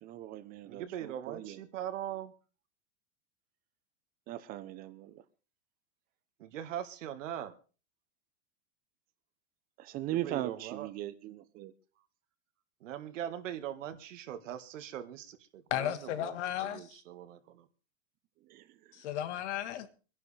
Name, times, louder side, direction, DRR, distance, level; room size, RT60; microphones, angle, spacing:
voice 1, 0.0-1.6 4.3-5.2 9.8-11.7 18.5-18.6, right 14 dB, 25° right, 0.8 m, -39 dB
voice 2, 0.7-2.3 6.4-7.6 10.1-10.9 12.8-17.7, right 10 dB, 85° right, 1.9 m, -41 dB
voice 3, 15.7-17.0 18.9-19.9, left 11 dB, 65° left, 1.6 m, -34 dB
25.0 x 11.0 x 3.4 m
supercardioid pair, 170°, 37 cm